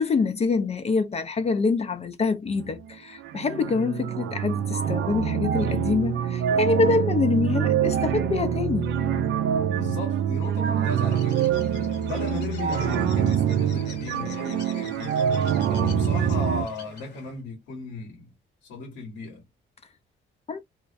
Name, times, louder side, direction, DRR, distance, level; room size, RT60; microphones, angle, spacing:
voice 1, 0.0-8.9 20.5-20.6, left 4 dB, 30° left, 0.4 m, -25 dB
sound 1, 2.5-2.9 3.2-16.7, right 8 dB, 75° right, 0.4 m, -25 dB
voice 2, 9.7-11.6 12.0-15.3 15.6-18.3 18.6-19.4, left 3 dB, 90° left, 1.2 m, -36 dB
Bird, 10.8-17.4, left 5 dB, 60° left, 1.0 m, -44 dB
2.5 x 2.0 x 2.4 m
cardioid pair, 90°, 20 cm